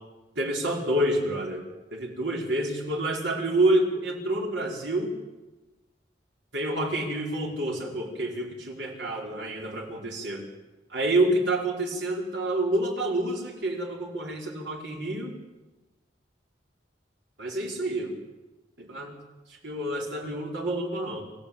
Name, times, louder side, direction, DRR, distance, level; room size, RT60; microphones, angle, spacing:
voice 1, 0.4-1.6 1.9-5.1 6.5-10.4 10.9-15.3 17.4-18.1 18.8-19.2 19.5-21.2, right 1 dB, 80° right, 0 dB, 5.3 m, -28 dB
27.0 x 15.0 x 8.9 m, 1.1 s
head